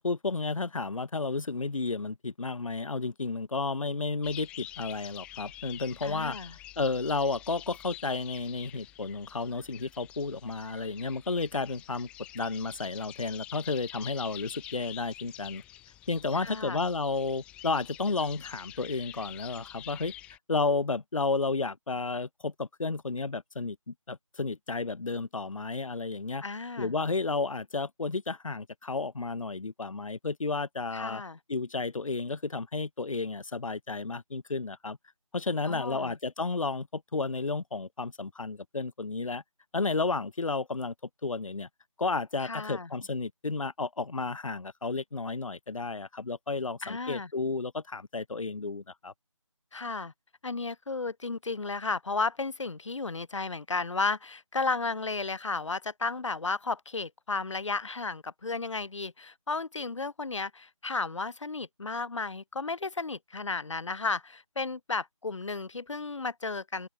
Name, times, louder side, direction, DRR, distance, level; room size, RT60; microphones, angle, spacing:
voice 1, 0.0-6.4 6.8-12.1 12.3-15.6 16.1-20.1 20.5-26.4 26.8-31.2 31.5-35.0 35.3-39.4 39.7-40.9 41.2-41.7 42.0-49.1, left 3 dB, 75° left, 0.9 m, -32 dB
sound 1, 4.2-20.4, left 14 dB, 5° left, 1.5 m, -47 dB
voice 2, 6.0-6.5 16.4-16.8 26.4-26.9 30.9-31.4 35.7-36.2 42.4-42.9 46.8-47.3 49.7-50.1 50.4-66.9, left 3 dB, 60° left, 1.5 m, -33 dB
open air
figure-of-eight pair, 165°, 17 cm